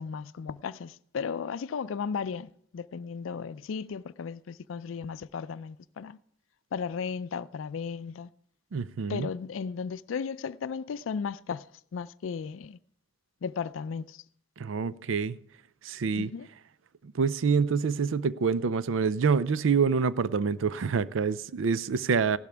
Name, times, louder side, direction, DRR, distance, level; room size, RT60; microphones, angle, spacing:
voice 1, 0.0-6.2 6.7-8.3 9.1-11.7 11.9-12.8 13.4-14.2 16.1-16.5, left 6 dB, 90° left, 0.4 m, -35 dB
voice 2, 8.7-9.3 14.6-15.4 15.8-16.3 17.1-22.4, right 5 dB, 80° right, 0.4 m, -26 dB
16.0 x 12.0 x 3.4 m
head